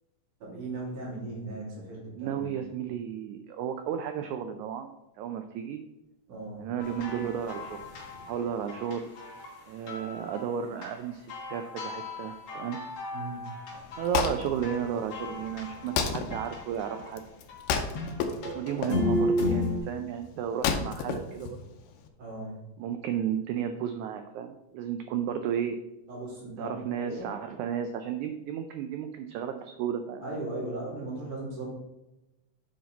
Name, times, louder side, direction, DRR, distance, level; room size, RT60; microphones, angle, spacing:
voice 1, 0.4-2.6 6.3-6.7 13.1-13.5 22.2-22.6 26.1-27.3 30.2-31.7, right 2 dB, 65° right, -5 dB, 4.2 m, -37 dB
voice 2, 2.2-4.9 5.2-5.8 6.6-7.8 8.3-9.1 9.7-12.8 14.0-17.2 18.5-21.6 22.8-25.8 26.6-30.2, right 9 dB, 85° right, 7 dB, 1.7 m, -33 dB
sound 1, 6.8-9.6 9.9-11.0 11.3-17.1 17.5-19.8, left 1 dB, 55° left, 2.1 m, -34 dB
Wood, 13.7-22.1, left 6 dB, 85° left, 2.4 m, -33 dB
7.6 x 5.8 x 4.0 m, 0.96 s
omnidirectional pair, 3.9 m